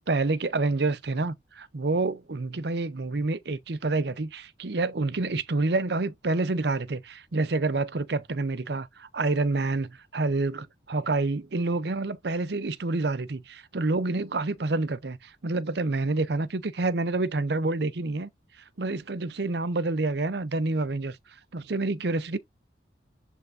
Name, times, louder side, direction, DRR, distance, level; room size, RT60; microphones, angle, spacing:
voice 1, 0.1-18.3 18.6-22.4, right 3 dB, 65° right, 0.7 m, -28 dB
10.0 x 3.5 x 2.6 m
head